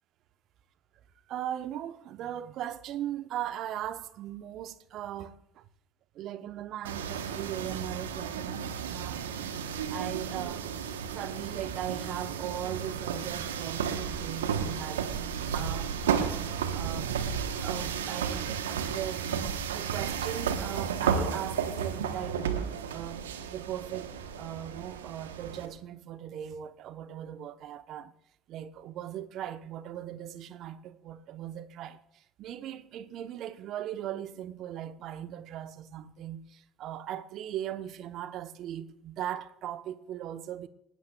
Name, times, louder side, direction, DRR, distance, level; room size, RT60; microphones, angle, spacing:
voice 1, 1.3-5.6 6.1-9.3 9.9-10.7 11.1-17.1 17.6-19.3 19.7-23.2 23.5-28.1 28.5-40.7, right 11 dB, 60° right, 0.8 m, -39 dB
sound 1, 6.8-25.7, right 7 dB, 85° right, 1.0 m, -33 dB
29.0 x 12.5 x 2.3 m
hypercardioid pair, 55°, 0 cm